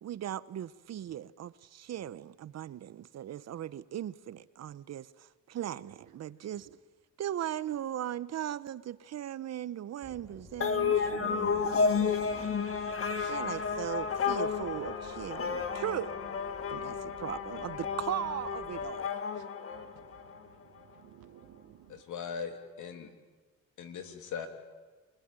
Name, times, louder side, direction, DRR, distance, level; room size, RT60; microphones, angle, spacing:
voice 1, 0.0-6.7 7.2-12.9 13.3-16.2 16.7-19.1, right 11 dB, 60° right, 0.9 m, -38 dB
sound 1, 10.0-18.9, left 1 dB, 15° left, 7.8 m, -54 dB
sound 2, 10.6-20.4, left 5 dB, 45° left, 2.1 m, -32 dB
voice 2, 12.2-13.8 15.6-15.7 16.9-17.2 19.3-22.0, right 12 dB, 85° right, 1.5 m, -58 dB
voice 3, 21.9-23.1 23.8-24.5, left 6 dB, 80° left, 3.0 m, -39 dB
28.0 x 19.5 x 9.0 m
cardioid pair, 90°, 30 cm